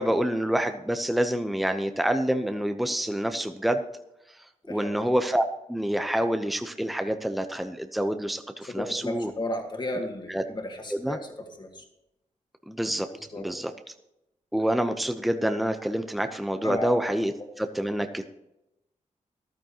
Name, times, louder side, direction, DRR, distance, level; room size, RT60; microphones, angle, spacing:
voice 1, 0.0-3.8 4.7-5.4 5.7-9.3 10.3-10.4 10.9-11.2 12.7-13.1 13.4-13.7 14.5-18.3, right 1 dB, ahead, 7 dB, 0.8 m, -27 dB
voice 2, 4.7-5.1 8.7-11.2 11.6-11.8 13.1-13.5 16.6-16.9, left 1 dB, 35° left, 2 dB, 2.2 m, -34 dB
14.0 x 12.0 x 3.0 m, 0.87 s
cardioid pair, 85°, 13 cm